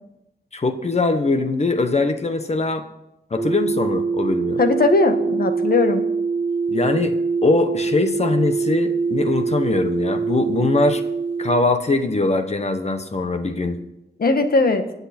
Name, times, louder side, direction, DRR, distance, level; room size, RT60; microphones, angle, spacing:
voice 1, 0.5-2.8 3.3-4.6 6.7-7.1 7.4-11.0 11.4-13.8, left 3 dB, 40° left, 7 dB, 1.3 m, -21 dB
sound 1, 3.4-11.6, right 4 dB, 30° right, 2.2 m, -23 dB
voice 2, 4.6-6.1 14.2-14.8, left 3 dB, 60° left, 7 dB, 1.5 m, -18 dB
24.5 x 8.3 x 4.4 m, 0.88 s
wide cardioid pair, 145°, 18 cm